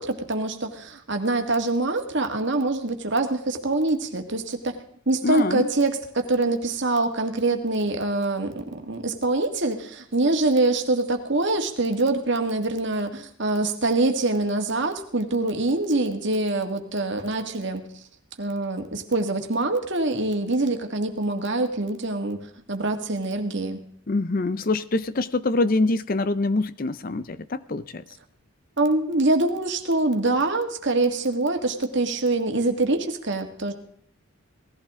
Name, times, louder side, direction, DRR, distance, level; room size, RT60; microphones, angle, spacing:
voice 1, 0.0-4.8 5.1-17.9 18.4-22.4 22.7-23.8 28.8-33.7, right 2 dB, 55° right, 5 dB, 1.9 m, -24 dB
voice 2, 5.2-5.7 24.1-28.0, left 2 dB, 40° left, 15 dB, 0.6 m, -25 dB
18.5 x 15.0 x 3.7 m, 0.65 s
head